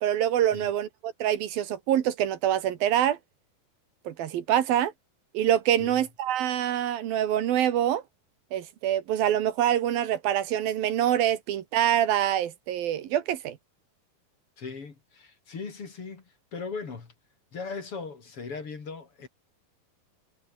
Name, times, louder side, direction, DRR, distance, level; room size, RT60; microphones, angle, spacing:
voice 1, 0.0-3.2 4.0-4.9 5.3-8.0 8.5-13.6, right 11 dB, 75° right, 3.4 m, -25 dB
voice 2, 14.6-17.1 17.5-19.3, left 4 dB, 40° left, 3.8 m, -38 dB
omnidirectional pair, 4.2 m